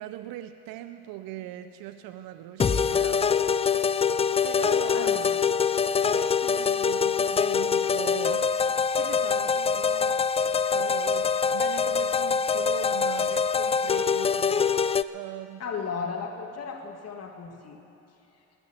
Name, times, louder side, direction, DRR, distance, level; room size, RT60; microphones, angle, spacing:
voice 1, 0.0-3.3 4.4-5.1 6.0-15.6, right 13 dB, 80° right, 10 dB, 0.6 m, -40 dB
sound 1, 2.6-15.0, left 6 dB, 20° left, 0.3 m, -24 dB
voice 2, 4.9-5.3 15.6-17.8, left 5 dB, 45° left, 2 dB, 1.8 m, -34 dB
20.5 x 9.0 x 6.8 m, 3.0 s
supercardioid pair, 65°, 35 cm